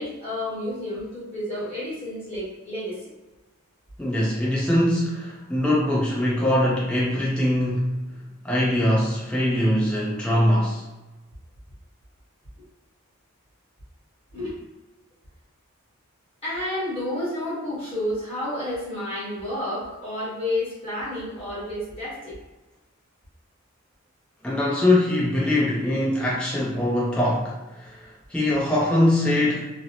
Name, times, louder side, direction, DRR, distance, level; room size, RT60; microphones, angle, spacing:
voice 1, 0.0-3.0 14.3-14.5 16.4-22.4, left 1 dB, 30° left, -10 dB, 1.1 m, -30 dB
voice 2, 4.0-7.9 8.4-10.8 24.4-29.7, left 1 dB, 5° left, -7 dB, 0.4 m, -22 dB
2.6 x 2.0 x 2.8 m, 1.1 s
head